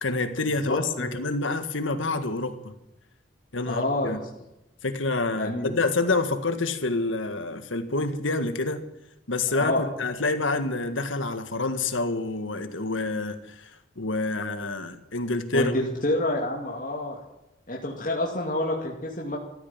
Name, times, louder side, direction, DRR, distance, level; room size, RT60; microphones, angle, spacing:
voice 1, 0.0-2.7 3.5-4.2 4.8-8.8 9.3-13.7 14.0-15.7, left 3 dB, 90° left, 1.8 m, -27 dB
voice 2, 0.7-1.1 3.7-4.2 5.4-5.7 9.6-9.8 15.5-17.2 17.7-19.4, left 1 dB, 45° left, 2.4 m, -28 dB
15.0 x 13.0 x 7.4 m
head